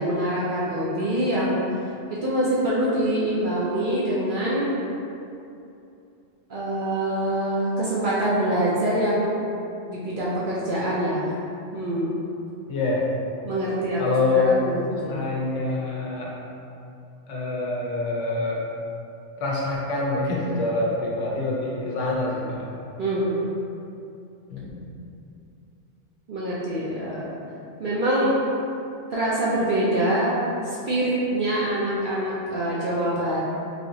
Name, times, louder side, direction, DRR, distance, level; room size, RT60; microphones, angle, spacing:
voice 1, 0.0-1.6 2.1-4.7 6.5-9.3 9.9-11.3 11.7-12.1 13.4-14.0 14.3-15.2 23.0-23.4 26.3-27.3 27.8-28.4 29.1-30.3 30.6-33.4, right 1 dB, 60° right, -8 dB, 0.5 m, -25 dB
voice 2, 12.7-13.0 14.0-14.6 15.1-16.3 17.3-18.6 19.4-22.7 24.5-24.9, left 3 dB, 80° left, -4 dB, 1.0 m, -25 dB
3.4 x 2.7 x 2.6 m, 2.7 s
omnidirectional pair, 1.3 m